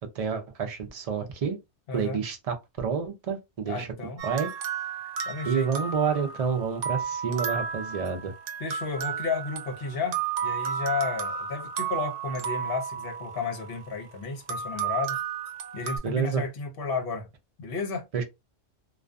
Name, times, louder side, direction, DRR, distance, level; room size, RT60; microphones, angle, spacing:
voice 1, 0.1-1.6 1.9-3.9 4.2-4.5 5.4-8.3 16.0-16.4 18.1-18.2, right 6 dB, 50° right, 0.4 m, -29 dB
voice 2, 1.9-2.2 3.7-4.2 5.3-5.7 8.6-15.2 15.7-17.3 17.6-18.0, left 4 dB, 55° left, 0.8 m, -32 dB
sound 1, 4.2-13.9 14.5-16.0, right 7 dB, 75° right, 0.9 m, -33 dB
2.5 x 2.4 x 2.2 m
omnidirectional pair, 1.3 m